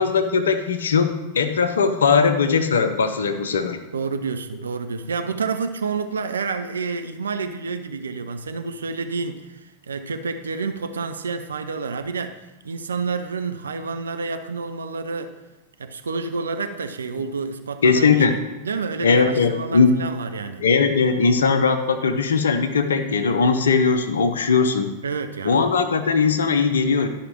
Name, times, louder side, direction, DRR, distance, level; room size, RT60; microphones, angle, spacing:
voice 1, 0.0-3.8 17.8-18.3 19.0-19.9 20.6-24.9 25.4-27.1, left 5 dB, 65° left, 9 dB, 0.8 m, -19 dB
voice 2, 3.9-15.4 15.8-20.6 25.0-25.6, right 4 dB, 70° right, 8 dB, 0.5 m, -29 dB
11.5 x 4.9 x 4.5 m, 1.1 s
figure-of-eight pair, 90°, 0 cm